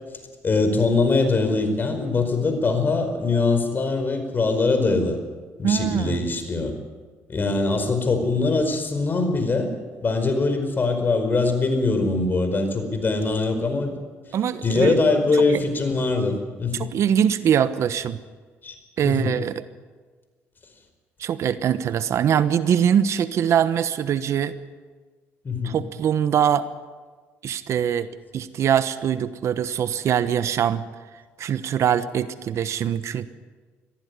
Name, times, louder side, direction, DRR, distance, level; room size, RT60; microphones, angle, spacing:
voice 1, 0.4-5.2 5.6-6.7 7.3-9.7 10.0-13.9 14.6-16.9 18.6-18.7 19.0-19.3 25.4-25.8, left 3 dB, 35° left, 8 dB, 4.9 m, -22 dB
voice 2, 5.6-6.3 14.3-15.0 16.7-18.2 19.0-19.6 21.2-24.5 25.6-26.7 27.4-28.1 28.3-30.8 31.4-33.3, right 9 dB, 60° right, 13 dB, 1.1 m, -22 dB
22.0 x 15.0 x 9.6 m, 1.4 s
supercardioid pair, 70°, 6 cm